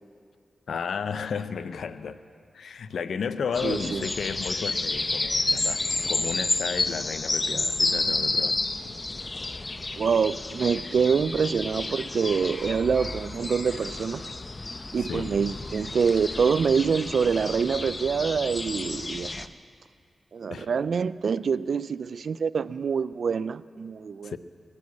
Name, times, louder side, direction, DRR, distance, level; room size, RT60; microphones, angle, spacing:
voice 1, 0.7-2.2 2.5-8.6 8.8-8.9 15.1-15.3 20.5-20.7 24.2-24.4, left 6 dB, 80° left, 0.5 m, -33 dB
sound 1, 3.5-19.5, left 2 dB, 35° left, 0.7 m, -30 dB
voice 2, 3.6-4.0 10.0-14.2 14.9-19.5 20.3-24.4, right 6 dB, 75° right, 0.3 m, -26 dB
18.0 x 9.7 x 8.3 m
cardioid pair, 60°, 0 cm